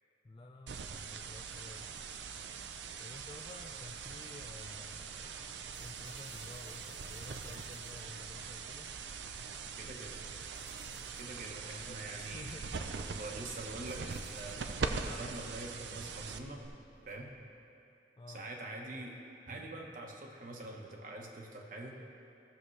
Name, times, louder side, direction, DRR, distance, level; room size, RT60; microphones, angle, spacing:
voice 1, 0.2-1.9 3.0-8.9 11.7-12.8 18.2-18.5, left 2 dB, 25° left, 1 dB, 0.3 m, -52 dB
sound 1, 0.7-16.7, right 5 dB, 80° right, 0.5 m, -42 dB
sound 2, 5.7-17.5, left 2 dB, 80° left, 1.4 m, -60 dB
voice 2, 9.8-10.2 11.2-12.5 13.1-16.6 17.0-17.3 18.3-19.2 19.5-22.0, right 2 dB, 45° right, 0 dB, 1.2 m, -45 dB
16.0 x 6.9 x 3.3 m, 2.7 s
head